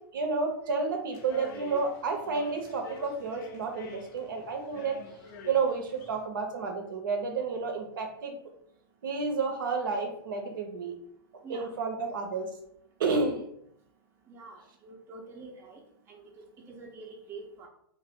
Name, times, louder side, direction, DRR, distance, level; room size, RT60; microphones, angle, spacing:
voice 1, 0.1-5.0 5.4-8.4 9.0-10.9 11.5-12.5 13.0-13.4, right 4 dB, 60° right, 2 dB, 0.6 m, -31 dB
sound 1, 1.1-6.2, left 4 dB, 45° left, 0.5 m, -46 dB
voice 2, 14.3-15.8 16.1-16.2 16.7-17.7, right 3 dB, 20° right, -1 dB, 0.5 m, -46 dB
2.6 x 2.0 x 3.4 m, 0.71 s
figure-of-eight pair, 100°, 12 cm